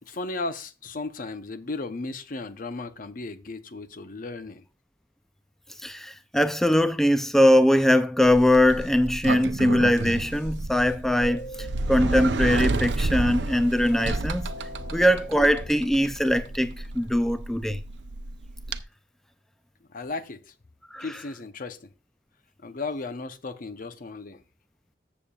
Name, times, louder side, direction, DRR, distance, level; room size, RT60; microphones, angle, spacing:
voice 1, 0.0-4.6 14.8-14.9 19.9-20.5 21.0-21.9 22.6-24.4, left 3 dB, 50° left, 0.7 m, -35 dB
voice 2, 5.8-14.5 14.9-17.8 20.9-21.1, left 1 dB, ahead, 0.4 m, -21 dB
Sliding door, 8.2-18.8, right 3 dB, 85° right, 0.6 m, -31 dB
sound 1, 11.2-17.4, left 1 dB, 75° left, 4.8 m, -44 dB
14.0 x 7.1 x 2.4 m
head